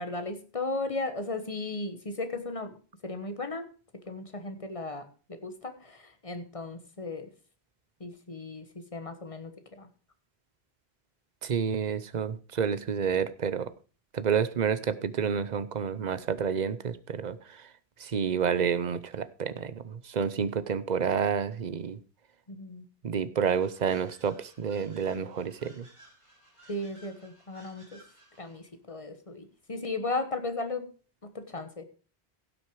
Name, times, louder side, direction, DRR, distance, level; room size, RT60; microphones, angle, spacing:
voice 1, 0.0-2.8 3.0-3.7 4.1-7.3 8.0-8.7 8.9-9.9 22.5-22.8 26.7-28.0 28.4-30.9 31.2-31.8, left 2 dB, 35° left, 8 dB, 1.4 m, -36 dB
voice 2, 11.4-13.7 14.1-17.7 18.0-22.0 23.0-25.9, right 7 dB, 50° right, 15 dB, 0.8 m, -29 dB
sound 1, 23.5-28.7, right 1 dB, 30° right, 2.8 m, -58 dB
16.5 x 6.4 x 4.7 m, 0.37 s
omnidirectional pair, 1.1 m